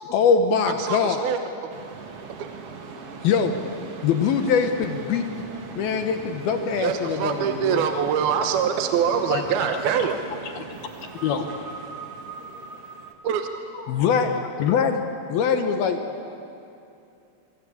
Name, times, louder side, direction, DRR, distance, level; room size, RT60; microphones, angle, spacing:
voice 1, 0.1-1.3 3.2-3.8 4.0-5.4 5.8-7.8 9.3-9.4 10.6-10.7 11.2-11.5 13.9-15.0 15.3-16.0, left 6 dB, 70° left, 6 dB, 2.6 m, -23 dB
voice 2, 0.7-1.7 2.4-2.5 6.8-10.2 13.2-13.5, right 7 dB, 70° right, 6 dB, 2.6 m, -24 dB
sound 1, 1.7-13.1, right 4 dB, 50° right, 1.8 m, -39 dB
voice 3, 1.9-2.8 3.1-3.3 11.9-12.8 13.6-14.1, left 5 dB, 40° left, -1 dB, 7.0 m, -55 dB
26.5 x 24.5 x 8.6 m, 2.7 s
omnidirectional pair, 5.2 m